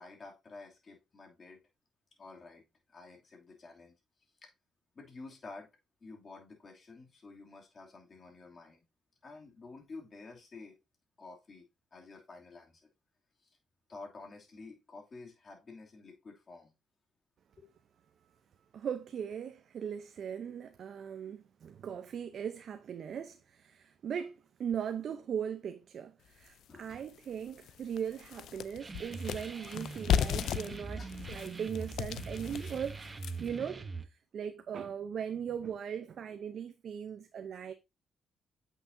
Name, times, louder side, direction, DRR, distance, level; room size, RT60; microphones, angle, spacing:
voice 1, 0.0-1.6 2.2-2.6 2.9-3.9 4.4-4.5 4.9-5.7 6.0-8.8 9.2-10.8 11.2-11.6 11.9-12.8 13.4-13.6 13.9-16.7 17.6-17.7 26.7-27.0 29.7-29.8 30.9-31.1, left 3 dB, 40° left, 2.5 m, -50 dB
voice 2, 18.7-33.0 33.4-37.7, right 8 dB, 60° right, 0.6 m, -39 dB
sound 1, 26.5-26.6 27.1-27.2 27.5-33.6, left 9 dB, 75° left, 0.4 m, -35 dB
sound 2, 28.8-34.0, right 4 dB, 25° right, 0.9 m, -43 dB
8.1 x 5.9 x 2.6 m
cardioid pair, 90°, 0 cm